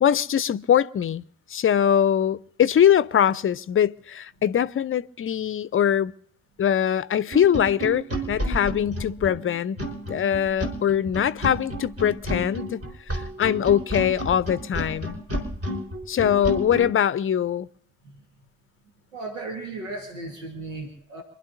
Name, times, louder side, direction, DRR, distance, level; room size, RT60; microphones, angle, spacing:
voice 1, 0.0-1.2 1.5-6.1 6.6-9.8 10.1-12.8 13.1-15.2 16.1-17.7, left 9 dB, 35° left, 0.6 m, -22 dB
sound 1, 7.3-16.9, equal, 40° right, 4.2 m, -31 dB
voice 2, 19.1-21.2, right 2 dB, 85° right, 1.6 m, -36 dB
27.0 x 11.5 x 2.7 m
figure-of-eight pair, 40°, 37 cm